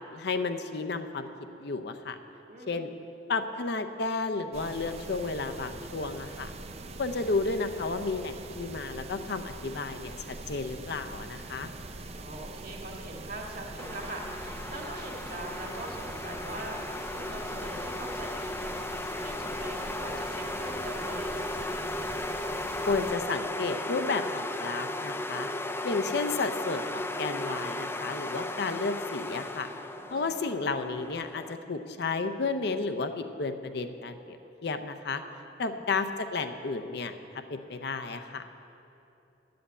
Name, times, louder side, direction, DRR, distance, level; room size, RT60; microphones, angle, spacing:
voice 1, 0.1-1.3 1.6-2.2 2.7-2.9 3.3-6.5 7.0-11.7 22.9-25.5 25.8-29.7 30.1-35.2 35.6-37.1 37.5-38.4, left 3 dB, 65° left, 8 dB, 0.6 m, -32 dB
voice 2, 2.5-2.9 12.2-18.7 19.2-21.6 30.0-30.4 35.7-35.8, right 1 dB, 55° right, -1 dB, 1.9 m, -42 dB
sound 1, 4.5-23.1, right 2 dB, 35° right, 0.6 m, -43 dB
sound 2, 13.8-31.6, left 2 dB, 15° left, 0.4 m, -36 dB
10.0 x 7.7 x 8.1 m, 2.9 s
head